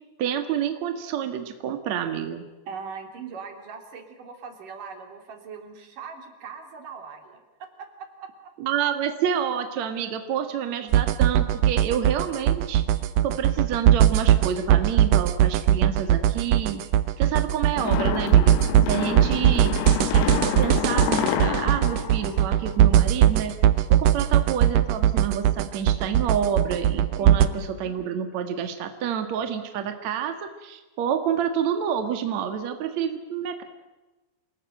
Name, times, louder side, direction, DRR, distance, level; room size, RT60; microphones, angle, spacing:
voice 1, 0.2-2.4 8.6-12.8 13.2-16.8 17.2-18.6 18.9-19.7 20.1-23.5 23.9-33.6, right 8 dB, 65° right, 7 dB, 1.7 m, -28 dB
voice 2, 2.7-8.3 18.9-19.1 27.1-27.5, right 5 dB, 45° right, 4 dB, 4.4 m, -40 dB
sound 1, 10.9-27.5, right 11 dB, 85° right, 2.1 m, -20 dB
sound 2, 17.8-23.1, left 10 dB, 90° left, 4.4 m, -28 dB
28.5 x 19.5 x 9.2 m, 1.1 s
omnidirectional pair, 5.9 m